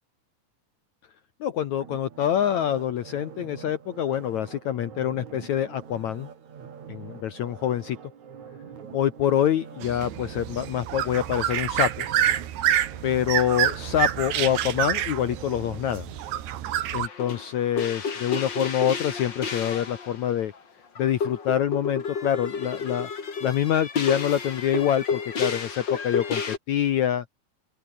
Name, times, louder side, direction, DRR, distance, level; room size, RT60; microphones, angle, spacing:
voice 1, 1.4-6.3 6.9-8.0 8.9-12.1 13.0-16.1 16.9-20.5 21.0-23.1 23.4-27.3, left 10 dB, 70° left, 1.7 m, -26 dB
sound 1, 1.8-16.9 17.3-17.4, right 7 dB, 45° right, 3.9 m, -45 dB
sound 2, 9.8-17.1, right 11 dB, 75° right, 3.9 m, -27 dB
sound 3, 17.0-20.2 20.5-20.6 20.9-26.6, left 5 dB, 35° left, 2.5 m, -31 dB
open air
omnidirectional pair, 4.8 m